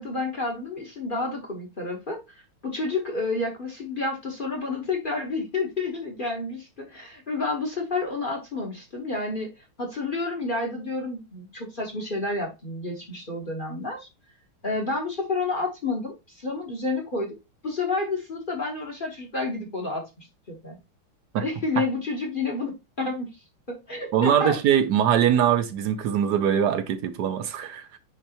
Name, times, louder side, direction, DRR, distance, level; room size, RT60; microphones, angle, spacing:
voice 1, 0.0-9.5 9.8-14.1 14.6-17.4 17.6-20.8 21.4-23.3 23.7-24.6, left 3 dB, 35° left, 1.0 m, -30 dB
voice 2, 24.1-27.9, right 9 dB, 65° right, 1.1 m, -22 dB
9.8 x 3.3 x 2.9 m
omnidirectional pair, 2.4 m